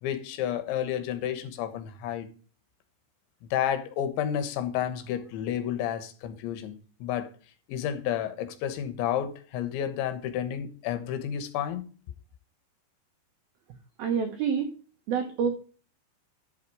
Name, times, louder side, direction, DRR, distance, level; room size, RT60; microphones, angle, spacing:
voice 1, 0.0-2.3 3.5-7.3 7.7-11.9, left 10 dB, 75° left, 3.4 m, -31 dB
voice 2, 14.0-14.7 15.1-15.5, right 7 dB, 70° right, 2.5 m, -27 dB
11.0 x 5.8 x 4.7 m
omnidirectional pair, 5.5 m